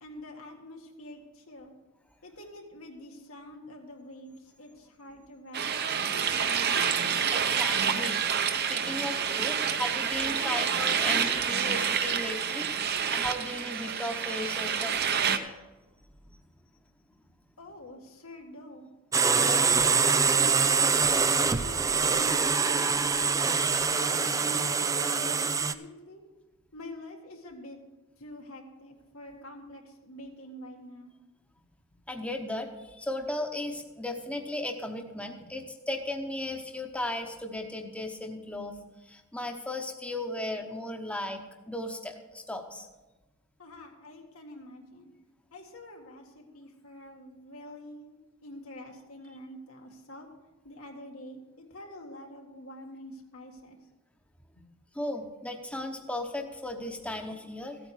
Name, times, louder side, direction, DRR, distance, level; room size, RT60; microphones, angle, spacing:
voice 1, 0.0-1.7 2.2-6.4 17.6-18.9 19.3-19.9 20.3-21.1 21.6-23.3 23.8-26.2 26.7-27.8 28.2-31.1 35.4-35.5 43.6-45.1 45.5-50.3 50.6-53.8 54.6-54.7, left 1 dB, 90° left, 1 dB, 1.9 m, -46 dB
sound 1, 5.5-15.4, right 7 dB, 50° right, 0.8 m, -28 dB
voice 2, 7.3-8.2 8.6-12.7 13.0-15.4 21.5-21.6 32.1-38.8 39.0-42.9 54.9-57.8, left 1 dB, 5° left, 4 dB, 0.8 m, -36 dB
sound 2, 19.1-25.7, right 5 dB, 15° right, 0.3 m, -24 dB
14.5 x 8.6 x 4.8 m, 1.1 s
head